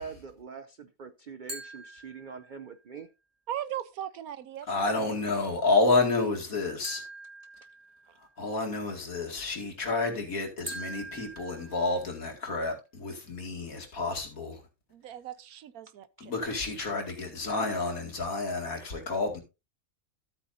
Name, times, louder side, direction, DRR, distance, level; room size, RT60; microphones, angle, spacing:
voice 1, 0.0-3.1, right 5 dB, 60° right, 0.5 m, -44 dB
sound 1, 1.5-2.8 6.8-8.4 10.7-12.4, right 2 dB, 35° right, 2.3 m, -44 dB
voice 2, 3.5-4.9 14.9-16.3, right 11 dB, 80° right, 1.2 m, -38 dB
voice 3, 4.7-7.0 8.4-14.6 16.2-19.4, left 3 dB, 70° left, 2.7 m, -29 dB
13.0 x 8.3 x 2.6 m
omnidirectional pair, 1.5 m